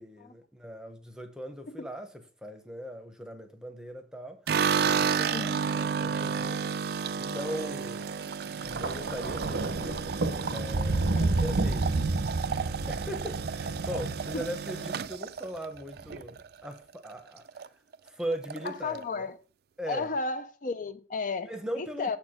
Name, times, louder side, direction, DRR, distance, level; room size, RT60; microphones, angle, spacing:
voice 1, 0.0-2.1 2.4-4.4 7.2-10.0 10.5-12.0 12.9-17.6 18.1-19.3 19.8-20.1 21.4-22.2, equal, 5° right, 0.8 m, -39 dB
sound 1, 4.5-16.7 17.1-17.7 17.9-18.0 18.3-19.0, right 6 dB, 55° right, 0.3 m, -32 dB
voice 2, 5.3-5.6 11.2-11.4 14.3-14.5 18.6-19.4 19.9-21.5 21.8-22.2, left 3 dB, 45° left, 0.4 m, -33 dB
Thunder, 8.6-15.0 16.0-16.2, right 2 dB, 75° right, 0.7 m, -30 dB
7.0 x 4.5 x 4.9 m
head